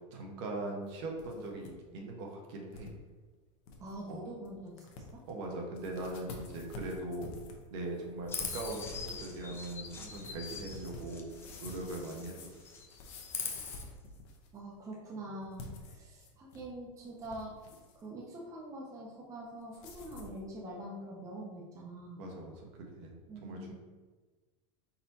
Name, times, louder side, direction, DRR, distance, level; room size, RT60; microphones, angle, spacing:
voice 1, 0.1-2.9 4.1-4.2 5.2-7.3 7.7-11.3 11.6-12.6 22.2-23.7, right 2 dB, 60° right, 1 dB, 1.0 m, -41 dB
sound 1, 0.9-1.7 2.0-2.1 2.7-2.9 3.3-3.4 3.7-4.0 4.5-4.6 4.8-5.3 5.7-14.6 15.4-16.7 17.0-18.0 19.7-20.4, left 3 dB, 50° left, 0.8 m, -49 dB
voice 2, 3.8-4.9 5.1-5.2 14.5-17.5 17.9-22.2 23.3-23.7, right 1 dB, 20° right, -2 dB, 0.7 m, -44 dB
Chirp tweet, 8.3-12.3 12.6-13.8, left 5 dB, 15° left, 0.4 m, -42 dB
4.2 x 4.1 x 2.8 m, 1.3 s
supercardioid pair, 155°, 17 cm